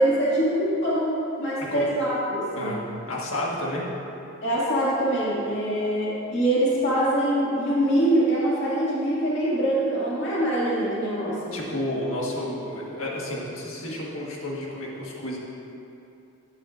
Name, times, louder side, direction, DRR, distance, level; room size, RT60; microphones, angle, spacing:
voice 1, 0.0-2.8 4.4-11.5, right 1 dB, 55° left, -8 dB, 2.2 m, -24 dB
voice 2, 3.1-3.8 11.5-15.4, left 1 dB, 75° left, -4 dB, 1.6 m, -31 dB
12.5 x 8.6 x 2.6 m, 2.8 s
head